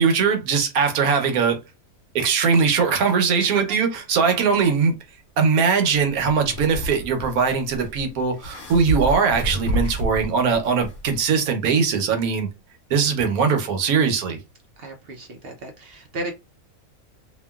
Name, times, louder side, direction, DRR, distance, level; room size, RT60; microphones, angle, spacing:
voice 1, 0.0-1.6 2.1-4.9 5.4-12.5 12.9-14.4, right 5 dB, 85° right, 1.2 m, -20 dB
sound 1, 6.1-11.2, equal, 80° left, 1.2 m, -30 dB
voice 2, 14.8-16.3, right 2 dB, 60° right, 0.6 m, -34 dB
2.9 x 2.5 x 2.3 m
omnidirectional pair, 1.5 m